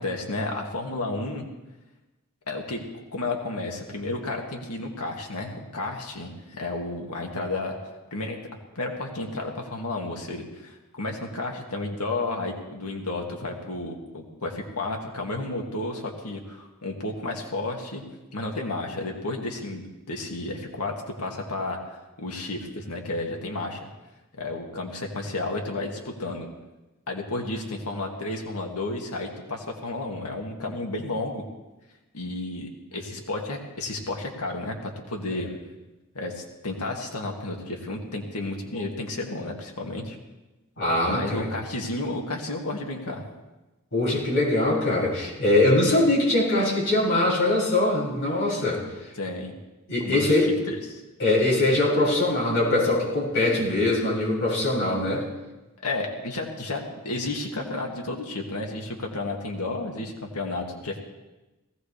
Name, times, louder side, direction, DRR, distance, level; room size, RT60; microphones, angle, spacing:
voice 1, 0.0-1.5 2.5-2.8 3.1-7.7 8.1-8.4 8.8-18.0 18.3-20.9 21.2-23.9 24.4-26.5 27.1-31.4 32.1-35.5 36.1-40.2 41.1-43.2 49.2-49.5 50.0-51.0 55.8-61.0, left 2 dB, 90° left, 1 dB, 2.2 m, -32 dB
voice 2, 40.8-41.5 43.9-48.8 49.9-50.5 51.2-55.3, left 2 dB, 60° left, -5 dB, 6.8 m, -22 dB
19.0 x 16.5 x 3.4 m, 1.1 s
head